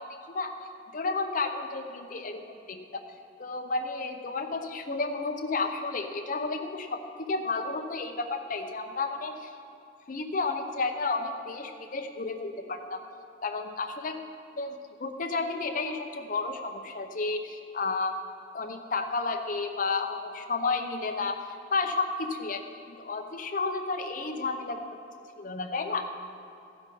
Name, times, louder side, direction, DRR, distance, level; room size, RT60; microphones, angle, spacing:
voice 1, 0.9-3.0 3.4-9.5 10.1-13.0 13.4-14.2 14.6-18.2 18.5-21.4 21.7-22.6 22.9-24.8 25.4-26.1, left 3 dB, 45° left, 4 dB, 0.8 m, -32 dB
14.5 x 6.0 x 5.4 m, 2.6 s
head